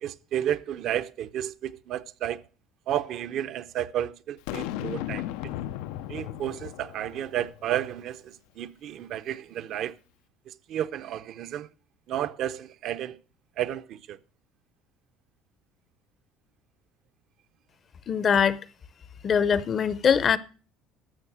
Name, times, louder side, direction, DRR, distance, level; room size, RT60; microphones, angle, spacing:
voice 1, 0.0-2.4 2.9-5.3 6.1-9.9 10.7-11.7 12.1-13.2 13.6-14.2, right 11 dB, 45° right, 0.6 m, -32 dB
Boom, 4.5-7.8, left 13 dB, 90° left, 0.6 m, -35 dB
voice 2, 18.1-18.6 19.2-20.4, left 7 dB, 30° left, 0.6 m, -22 dB
12.5 x 7.1 x 6.0 m
cardioid pair, 170°, 0 cm